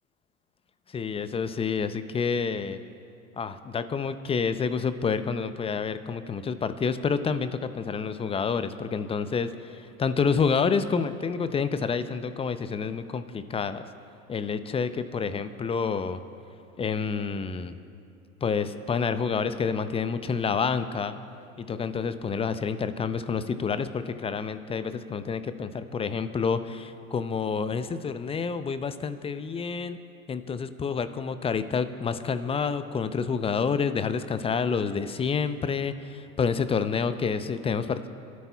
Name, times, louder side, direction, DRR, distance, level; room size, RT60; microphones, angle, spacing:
voice 1, 0.9-2.8 3.4-13.8 14.3-16.2 16.8-17.8 18.4-21.1 21.6-30.0 30.3-38.1, left 5 dB, 15° left, 12 dB, 0.6 m, -28 dB
29.5 x 12.5 x 2.3 m, 2.6 s
figure-of-eight pair, 85°, 42 cm